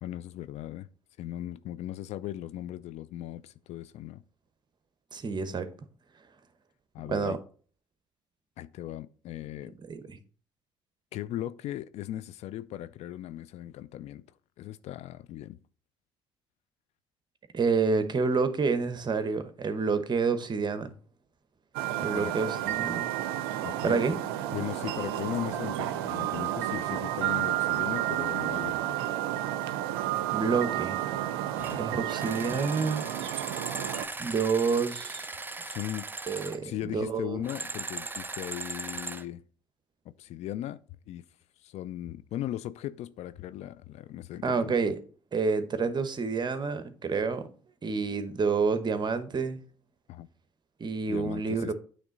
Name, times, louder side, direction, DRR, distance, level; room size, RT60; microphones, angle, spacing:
voice 1, 0.0-0.9 1.2-4.2 6.9-7.4 8.6-9.8 11.1-14.2 14.6-15.6 22.1-22.3 23.6-24.1 24.5-29.0 31.6-32.0 35.6-36.1 36.6-39.4 40.2-40.8 41.1-41.2 41.6-44.8 50.1-50.3 51.1-51.7, left 13 dB, 60° left, 0.4 m, -38 dB
voice 2, 5.1-5.7 7.1-7.4 9.9-10.2 17.5-20.9 22.0-23.1 23.8-24.2 30.3-31.0 31.7-33.1 34.2-35.3 36.3-37.4 44.4-45.0 45.3-47.5 47.8-49.6 50.8-51.7, right 4 dB, 35° right, 0.9 m, -28 dB
sound 1, 21.7-34.0, right 13 dB, 80° right, 0.4 m, -31 dB
sound 2, 31.6-31.8 32.1-36.6 37.4-39.3, right 3 dB, 15° right, 0.5 m, -38 dB
8.7 x 3.2 x 3.8 m
hypercardioid pair, 60°, 13 cm